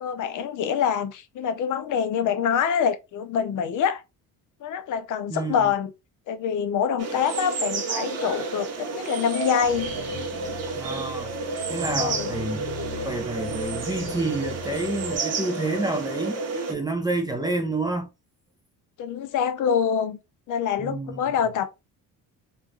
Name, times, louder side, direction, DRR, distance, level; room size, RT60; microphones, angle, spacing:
voice 1, 0.0-4.0 4.6-5.9 6.3-9.9 12.0-12.3 19.0-20.2 20.5-21.7, left 7 dB, 55° left, 0.6 m, -25 dB
voice 2, 5.3-5.7 10.7-11.3 11.7-12.6 13.0-16.4 16.7-18.1 20.8-21.2, right 2 dB, 10° right, 0.4 m, -29 dB
sound 1, 7.0-16.7, right 4 dB, 45° right, 0.9 m, -31 dB
sound 2, 9.6-15.2, left 3 dB, 15° left, 1.0 m, -39 dB
3.2 x 2.3 x 3.8 m
cardioid pair, 140°, 36 cm